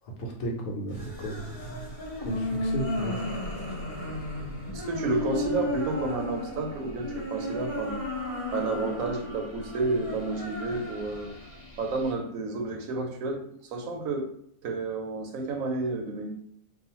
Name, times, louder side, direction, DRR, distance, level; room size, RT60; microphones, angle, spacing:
voice 1, 0.2-1.9 2.2-3.2, right 1 dB, 75° left, 0 dB, 1.0 m, -34 dB
sound 1, 0.9-12.1, left 1 dB, 35° left, 0.6 m, -34 dB
voice 2, 4.7-8.0 8.5-11.3 11.8-14.3 14.6-16.3, right 3 dB, 85° right, 2 dB, 1.0 m, -31 dB
2.4 x 2.4 x 2.8 m, 0.68 s
omnidirectional pair, 1.4 m